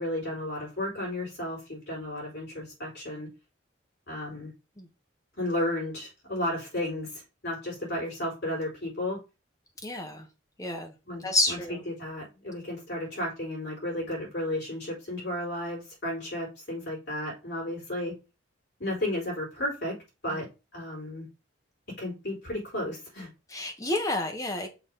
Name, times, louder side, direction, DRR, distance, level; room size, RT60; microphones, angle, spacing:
voice 1, 0.0-3.3 4.1-4.5 5.4-9.2 11.0-18.1 18.8-20.0 20.2-21.3 22.0-23.3, left 1 dB, 60° left, 4.0 m, -33 dB
voice 2, 9.8-10.3 10.6-10.9 11.2-11.8 20.3-20.4 23.5-24.7, left 2 dB, 15° left, 1.1 m, -29 dB
6.1 x 3.1 x 5.3 m
head